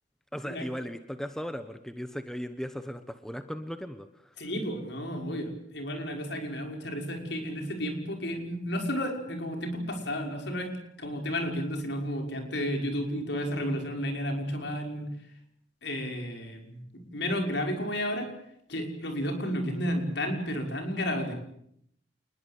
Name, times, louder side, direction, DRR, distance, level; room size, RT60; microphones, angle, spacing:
voice 1, 0.3-4.3, equal, 5° left, 9 dB, 1.1 m, -37 dB
voice 2, 4.4-10.7 11.0-15.1 15.8-16.8 17.1-18.3 18.7-21.3, equal, 60° left, 3 dB, 5.8 m, -32 dB
28.0 x 21.0 x 8.4 m, 0.75 s
head